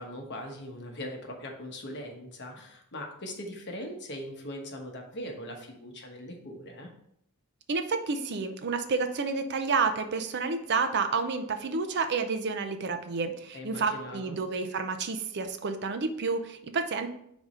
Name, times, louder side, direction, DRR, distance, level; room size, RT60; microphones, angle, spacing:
voice 1, 0.0-6.9 13.5-14.4, left 1 dB, 55° left, 2 dB, 1.1 m, -40 dB
voice 2, 7.7-17.1, right 4 dB, 50° right, 8 dB, 0.5 m, -30 dB
4.7 x 4.1 x 4.8 m, 0.72 s
head